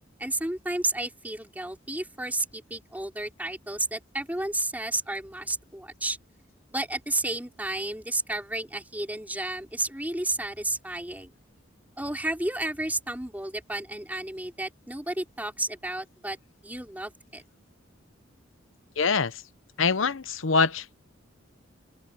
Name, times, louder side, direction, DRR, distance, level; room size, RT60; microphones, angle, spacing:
voice 1, 0.2-6.2 6.7-11.3 12.0-16.4 16.6-17.4, right 2 dB, 10° right, 3.8 m, -32 dB
voice 2, 19.0-19.4 19.8-20.9, left 4 dB, 80° left, 0.9 m, -24 dB
head